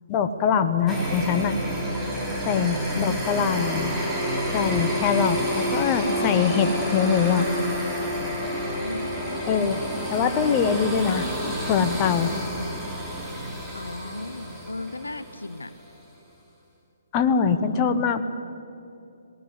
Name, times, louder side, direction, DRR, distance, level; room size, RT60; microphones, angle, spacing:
voice 1, 0.1-1.6 2.5-3.9 4.5-7.5 9.5-9.8 10.1-11.3 11.6-12.3 17.1-18.2, left 7 dB, 25° left, 8 dB, 1.2 m, -23 dB
sound 1, 0.9-15.6, equal, 5° right, 3.0 m, -29 dB
voice 2, 2.9-3.5 8.8-9.4 13.7-15.7 17.3-17.8, left 2 dB, 80° left, 13 dB, 0.8 m, -37 dB
19.0 x 18.0 x 8.2 m, 2.6 s
figure-of-eight pair, 135°, 0 cm